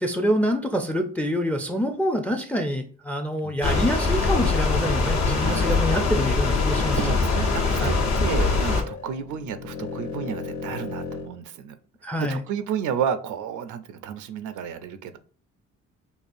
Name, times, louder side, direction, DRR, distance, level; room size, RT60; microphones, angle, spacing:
voice 1, 0.0-7.0 7.8-8.0 12.0-12.4, equal, 5° left, 5 dB, 0.4 m, -26 dB
voice 2, 3.4-3.7 5.4-5.8 6.9-7.9 8.2-11.8 12.3-15.2, right 8 dB, 75° right, 11 dB, 0.5 m, -31 dB
sound 1, 3.6-8.8, left 3 dB, 65° left, 1.0 m, -22 dB
sound 2, 5.1-11.3, left 5 dB, 80° left, 0.5 m, -37 dB
4.9 x 2.3 x 2.5 m, 0.42 s
cardioid pair, 90°, 30 cm